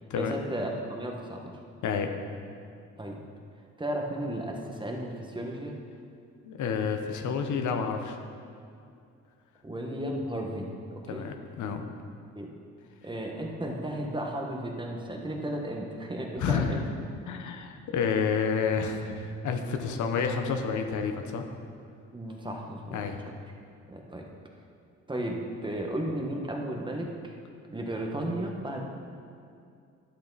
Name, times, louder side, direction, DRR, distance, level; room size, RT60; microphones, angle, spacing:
voice 1, 0.1-1.4 3.0-3.2 3.8-5.7 9.6-11.2 12.3-12.5 13.0-16.8 22.1-23.0 23.9-24.2 25.1-27.3 27.7-28.8, right 1 dB, 15° right, 0 dB, 1.3 m, -34 dB
voice 2, 6.4-8.2 11.1-11.8 16.4-16.8 17.3-21.4 22.9-23.2, left 6 dB, 75° left, 5 dB, 0.9 m, -29 dB
11.5 x 6.7 x 4.1 m, 2.4 s
cardioid pair, 90°, 30 cm